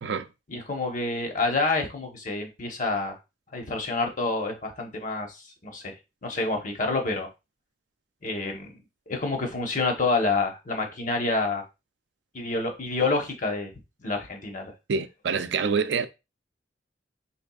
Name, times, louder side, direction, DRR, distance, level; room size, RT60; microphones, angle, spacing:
voice 1, 0.5-3.1 3.5-5.4 5.6-5.9 6.2-7.3 8.2-8.7 9.1-11.6 12.3-13.7 14.0-14.7, left 3 dB, 45° left, 0.9 m, -28 dB
voice 2, 14.9-16.1, right 5 dB, 75° right, 0.4 m, -26 dB
4.3 x 3.4 x 2.3 m
head